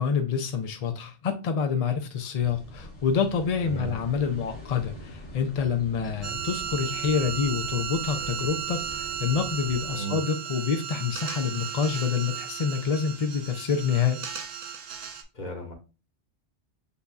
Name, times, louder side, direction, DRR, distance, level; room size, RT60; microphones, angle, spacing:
voice 1, 0.0-14.2, left 6 dB, 55° left, 0.4 m, -27 dB
sound 1, 2.4-10.0, left 1 dB, 75° left, 1.8 m, -43 dB
sound 2, 6.2-15.2, right 9 dB, 90° right, 1.1 m, -35 dB
voice 2, 15.3-15.7, right 3 dB, 40° left, 1.3 m, -35 dB
6.9 x 2.7 x 2.3 m
omnidirectional pair, 1.2 m